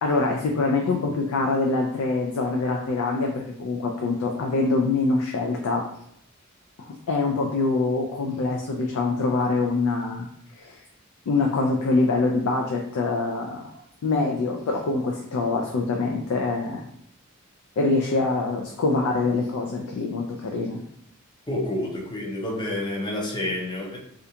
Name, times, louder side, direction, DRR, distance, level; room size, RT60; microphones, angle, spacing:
voice 1, 0.0-5.8 6.8-10.3 10.6-10.8 11.3-13.6 14.0-16.8 17.8-20.8, left 3 dB, 90° left, 0 dB, 0.4 m, -24 dB
voice 2, 21.5-24.0, left 1 dB, 20° left, -2 dB, 0.5 m, -29 dB
2.5 x 2.2 x 2.7 m, 0.71 s
head